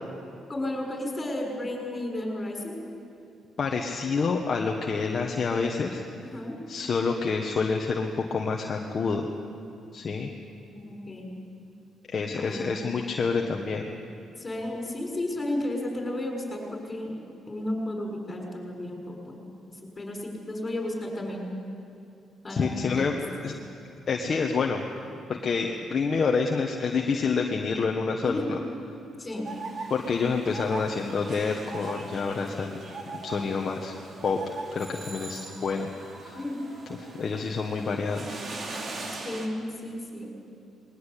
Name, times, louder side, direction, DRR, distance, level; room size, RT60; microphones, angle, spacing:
voice 1, 0.5-2.8 6.2-6.6 10.7-11.4 12.4-12.8 14.4-17.2 17.5-19.4 19.7-21.4 22.4-23.2 28.2-28.5 29.2-29.5 30.5-30.7 36.3-36.7 39.2-40.3, left 1 dB, 25° left, 0 dB, 6.5 m, -33 dB
voice 2, 3.6-6.0 6.7-9.3 9.9-10.3 12.1-13.9 22.5-23.1 23.4-23.5 24.1-24.9 25.3-28.6 29.9-32.8 33.2-33.9 34.2-34.4 34.7-35.9 36.2-36.4 37.2-38.4, left 5 dB, 45° left, 1 dB, 1.5 m, -28 dB
sound 1, 29.4-39.5, right 3 dB, 45° right, 2.7 m, -40 dB
21.0 x 18.5 x 8.5 m, 2.7 s
cardioid pair, 90°, 0 cm